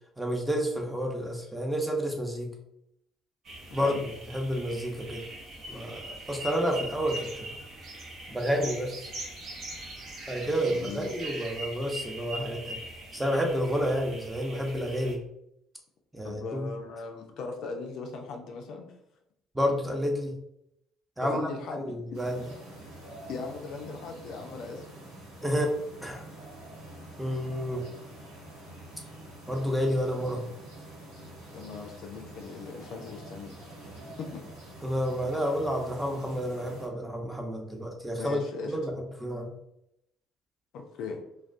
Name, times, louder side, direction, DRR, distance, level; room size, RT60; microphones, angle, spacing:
voice 1, 0.2-2.5 3.7-4.0 4.3-5.3 5.7-7.5 8.3-9.1 10.3-12.8 13.1-15.2 16.1-16.7 19.5-20.3 21.2-22.5 25.4-25.7 26.0-26.2 27.2-27.9 29.5-30.4 34.8-38.9 39.2-39.5, equal, 10° right, 1 dB, 0.6 m, -30 dB
sound 1, 3.4-15.1, right 1 dB, 55° right, 0.7 m, -41 dB
voice 2, 10.7-11.1 16.2-18.9 21.2-22.0 23.3-24.9 30.2-30.4 31.5-33.6 34.2-34.4 38.2-38.8 40.7-41.2, left 4 dB, 65° left, 3 dB, 0.3 m, -39 dB
sound 2, 22.1-36.9, right 1 dB, 85° right, 0.9 m, -46 dB
2.2 x 2.2 x 2.5 m, 0.79 s
hypercardioid pair, 55°, 0 cm